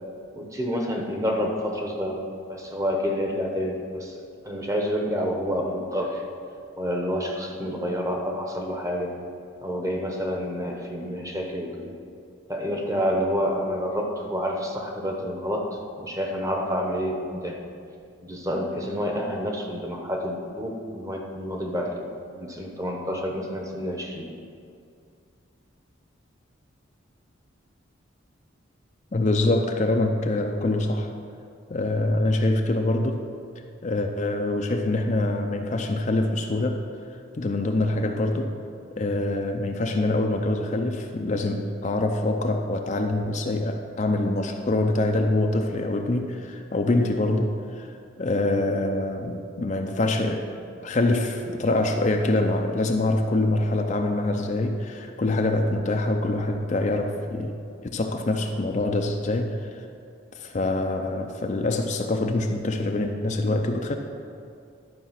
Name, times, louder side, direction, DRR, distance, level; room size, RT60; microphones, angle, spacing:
voice 1, 0.3-4.2 4.4-6.2 6.8-9.2 9.6-11.9 12.5-15.7 16.0-17.6 18.2-22.1 22.4-24.3, equal, 15° right, 1 dB, 0.9 m, -28 dB
voice 2, 29.1-31.1 31.7-33.2 33.8-36.8 37.4-38.5 39.0-47.9 48.2-50.6 50.8-57.6 57.9-59.8 60.3-64.0, left 2 dB, 35° left, 3 dB, 0.5 m, -25 dB
11.5 x 5.1 x 5.8 m, 2.4 s
head